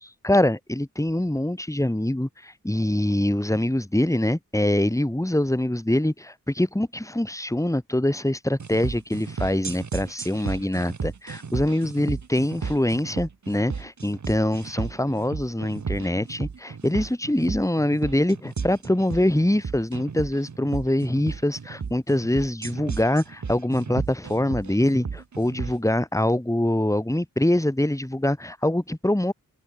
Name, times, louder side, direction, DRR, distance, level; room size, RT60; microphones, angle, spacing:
voice 1, 0.0-29.3, left 1 dB, 10° left, 2.1 m, -24 dB
sound 1, 8.6-25.8, right 5 dB, 55° right, 1.0 m, -34 dB
wide cardioid pair, 50°, 35 cm